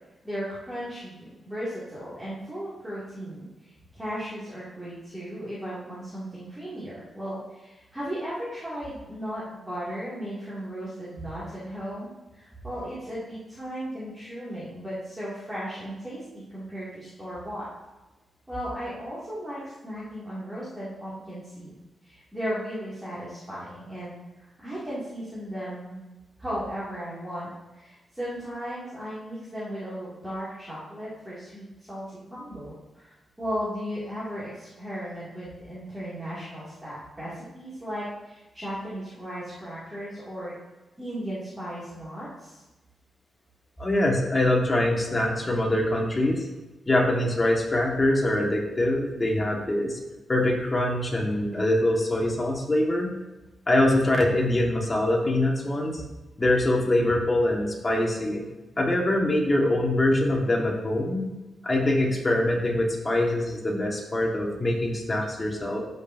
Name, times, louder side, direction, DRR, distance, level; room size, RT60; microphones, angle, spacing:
voice 1, 0.2-17.7 18.5-21.7 22.0-26.0 26.4-40.5 41.0-42.6, equal, 10° right, -11 dB, 2.4 m, -36 dB
voice 2, 43.8-46.5 46.9-50.0 50.3-53.2 53.7-56.0 56.4-58.4 58.8-61.3 61.6-65.8, left 1 dB, 20° left, -1 dB, 1.6 m, -24 dB
13.0 x 5.3 x 2.7 m, 1.1 s
wide cardioid pair, 140°, 0 cm